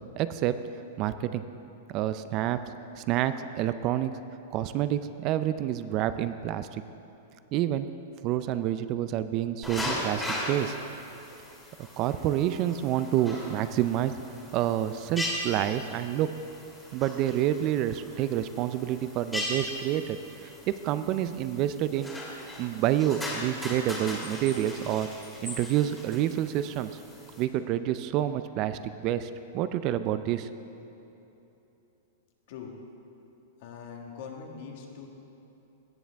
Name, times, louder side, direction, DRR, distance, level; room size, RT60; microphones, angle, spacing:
voice 1, 0.2-0.6 1.0-1.4 1.9-2.6 3.0-4.1 4.5-6.8 7.5-7.9 8.2-10.7 12.0-14.1 14.5-16.4 16.9-22.1 22.6-25.1 25.4-26.9 27.4-30.5, right 12 dB, 40° right, 12 dB, 0.4 m, -28 dB
sound 1, 9.6-27.4, left 1 dB, 5° left, 2.3 m, -38 dB
voice 2, 33.6-35.1, left 6 dB, 60° left, 1 dB, 1.6 m, -42 dB
17.5 x 7.2 x 3.5 m, 3.0 s
hypercardioid pair, 130°, 0 cm